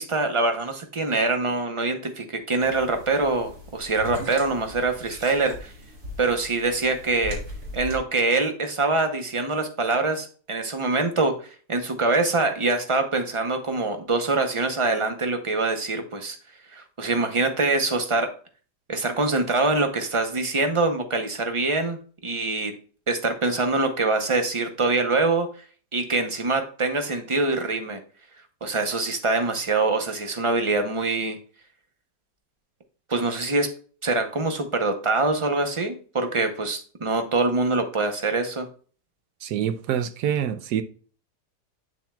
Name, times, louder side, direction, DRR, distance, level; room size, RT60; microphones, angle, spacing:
voice 1, 0.0-5.7 6.2-7.4 7.7-11.3 11.7-16.4 16.7-18.3 18.9-22.7 23.1-25.5 25.9-28.0 28.6-31.4 33.1-33.7 34.0-38.7, right 3 dB, 40° right, 0.4 m, -24 dB
sound 1, 2.6-8.0, left 1 dB, 70° right, 2.6 m, -39 dB
voice 2, 39.4-40.8, right 9 dB, 85° right, 1.2 m, -26 dB
8.2 x 7.2 x 2.3 m
omnidirectional pair, 1.7 m